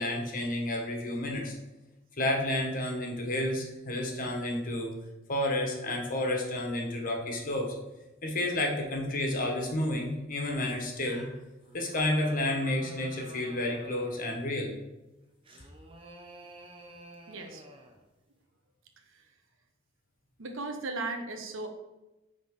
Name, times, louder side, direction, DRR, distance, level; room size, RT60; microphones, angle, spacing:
voice 1, 0.0-1.5 2.1-4.9 5.3-7.7 8.2-11.4 11.7-14.7, left 1 dB, 45° left, 1 dB, 1.3 m, -31 dB
sound 1, 11.6-14.4 15.4-18.0, right 1 dB, 25° right, 0.8 m, -49 dB
voice 2, 17.3-17.6 19.1-19.3 20.4-21.7, right 3 dB, 80° right, 4 dB, 1.0 m, -36 dB
9.6 x 3.8 x 3.7 m, 1.0 s
head